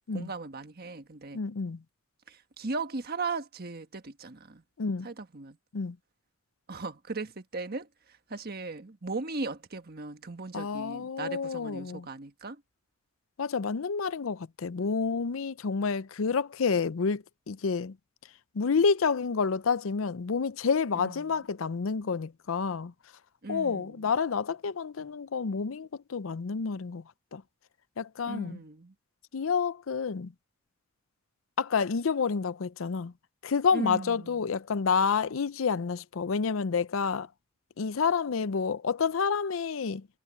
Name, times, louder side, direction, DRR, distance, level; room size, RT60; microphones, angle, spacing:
voice 1, 0.1-1.4 2.3-4.6 5.0-5.6 6.7-12.6 20.9-21.4 23.4-24.1 28.2-28.9 33.7-34.6, right 3 dB, 50° right, 1.4 m, -38 dB
voice 2, 1.3-1.8 4.8-5.1 5.7-6.0 10.5-12.1 13.4-18.0 18.5-22.9 23.5-27.0 27.3-27.4 28.0-28.6 29.3-30.3 31.6-33.1 33.4-37.3 37.8-40.1, left 5 dB, 90° left, 0.6 m, -29 dB
head